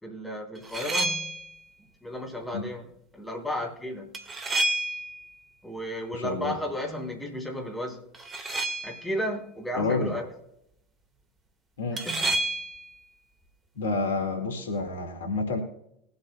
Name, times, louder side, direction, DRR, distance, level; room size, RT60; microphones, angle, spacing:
voice 1, 0.0-1.4 2.0-2.9 3.1-4.1 5.6-8.1 8.8-10.3 11.9-12.4, left 1 dB, 5° left, 1 dB, 3.4 m, -33 dB
sound 1, 0.6-1.6 4.1-5.3 8.1-9.1 12.0-12.9, right 2 dB, 20° right, 1.8 m, -30 dB
voice 2, 6.1-6.6 9.8-10.2 11.8-12.0 13.8-15.6, left 3 dB, 75° left, 4 dB, 2.0 m, -29 dB
21.5 x 8.0 x 2.3 m, 0.78 s
figure-of-eight pair, 75°, 0 cm